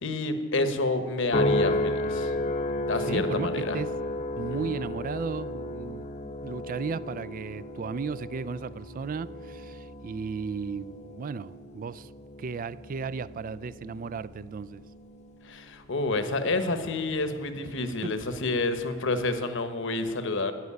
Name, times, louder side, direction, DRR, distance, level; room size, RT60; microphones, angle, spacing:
voice 1, 0.0-2.3 2.9-3.8 4.6-4.7 15.4-20.5, left 2 dB, 65° left, 1.2 m, -29 dB
sound 1, 1.3-15.8 16.3-16.8, left 1 dB, 35° left, 0.8 m, -33 dB
voice 2, 3.1-3.9 4.4-12.1 12.4-14.8 18.0-18.2, right 5 dB, 40° right, 0.4 m, -35 dB
13.0 x 9.3 x 9.8 m
head